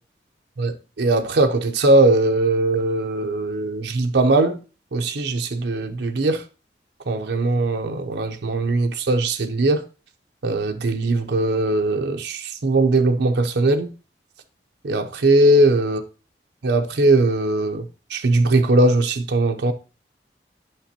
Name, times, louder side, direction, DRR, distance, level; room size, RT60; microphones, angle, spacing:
voice 1, 0.6-4.6 4.9-6.4 7.1-9.8 10.4-13.9 14.8-16.0 16.6-17.8 18.1-19.7, right 2 dB, 80° right, 0.6 m, -20 dB
8.7 x 5.9 x 2.8 m
head